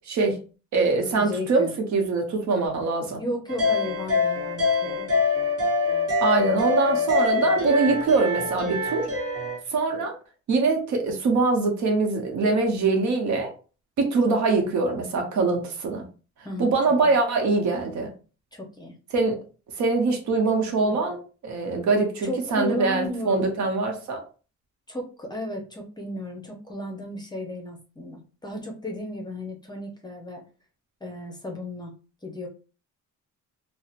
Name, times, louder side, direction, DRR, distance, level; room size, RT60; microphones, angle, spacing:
voice 1, 0.1-0.4 0.7-3.2 6.2-9.1 9.7-10.2 10.5-13.5 14.0-16.0 16.6-18.1 19.1-19.4 19.8-24.2, right 3 dB, 70° right, 3 dB, 0.8 m, -23 dB
voice 2, 1.1-1.7 3.2-5.1 14.6-14.7 16.4-16.7 17.0-17.2 18.5-19.0 20.8-21.0 22.2-23.5 24.9-30.4 31.0-31.9 32.2-32.5, left 1 dB, 15° left, 2 dB, 0.7 m, -34 dB
sound 1, 3.5-9.6, left 3 dB, 50° right, 1.1 m, -24 dB
2.7 x 2.1 x 2.4 m, 0.35 s
cardioid pair, 90°, 30 cm